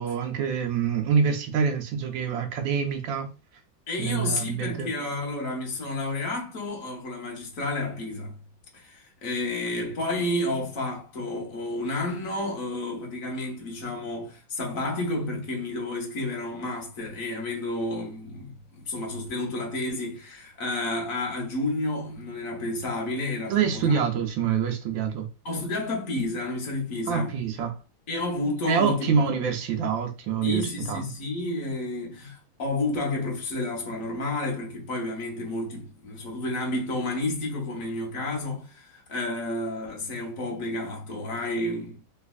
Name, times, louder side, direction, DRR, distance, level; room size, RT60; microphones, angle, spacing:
voice 1, 0.0-3.3 4.0-4.9 23.5-25.3 27.1-27.7 28.7-30.6 30.9-31.0, right 6 dB, 75° right, 1.3 m, -26 dB
voice 2, 3.9-8.4 8.7-24.0 25.4-27.4 28.1-29.1 30.4-42.0, left 2 dB, 50° left, 1.3 m, -31 dB
3.3 x 3.2 x 2.3 m
omnidirectional pair, 2.2 m